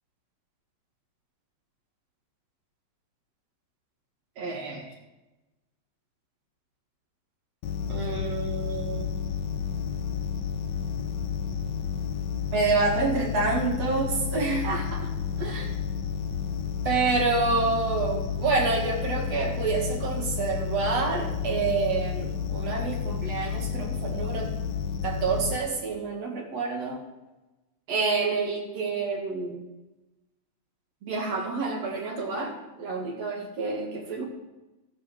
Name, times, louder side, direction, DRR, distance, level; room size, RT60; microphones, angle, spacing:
voice 1, 4.4-4.9 7.9-9.2 12.5-15.1 15.4-15.7 16.9-24.5 25.0-27.0 27.9-29.6 31.0-34.3, right 4 dB, 55° right, 1 dB, 2.5 m, -28 dB
sound 1, 7.6-25.6, left 7 dB, 70° left, 1.9 m, -31 dB
14.0 x 7.8 x 6.1 m, 1.0 s
omnidirectional pair, 3.9 m